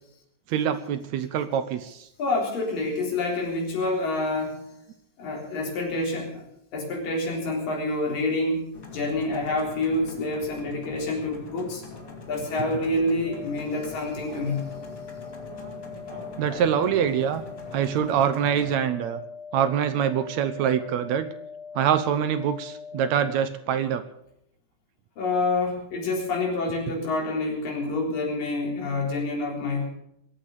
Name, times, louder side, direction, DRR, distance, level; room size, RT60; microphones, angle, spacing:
voice 1, 0.5-2.1 15.5-17.4 17.7-19.2 19.5-21.3 21.7-24.0, right 9 dB, 75° right, 11 dB, 1.7 m, -25 dB
voice 2, 2.2-4.6 5.2-6.4 6.7-8.6 8.9-11.8 12.3-14.6 25.2-29.9, left 2 dB, 70° left, -1 dB, 5.6 m, -27 dB
sound 1, 8.7-18.8, left 3 dB, 30° left, 1.9 m, -42 dB
sound 2, 13.3-23.3, left 6 dB, 90° left, 4.3 m, -41 dB
22.0 x 8.7 x 6.7 m, 0.77 s
omnidirectional pair, 4.0 m